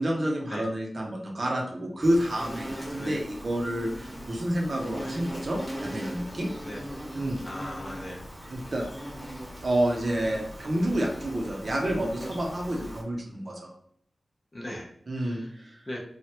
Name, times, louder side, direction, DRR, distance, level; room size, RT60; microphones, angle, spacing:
voice 1, 0.0-6.5 7.1-7.4 8.5-8.8 9.6-13.7 15.1-15.8, right 1 dB, 60° right, 0 dB, 0.8 m, -29 dB
Insect, 2.0-13.0, equal, 5° left, 1.2 m, -39 dB
voice 2, 7.4-8.2 14.5-14.9 15.2-15.5 15.9-16.0, left 1 dB, 35° left, -1 dB, 0.7 m, -38 dB
3.2 x 2.4 x 2.9 m, 0.67 s
cardioid pair, 60°, 0 cm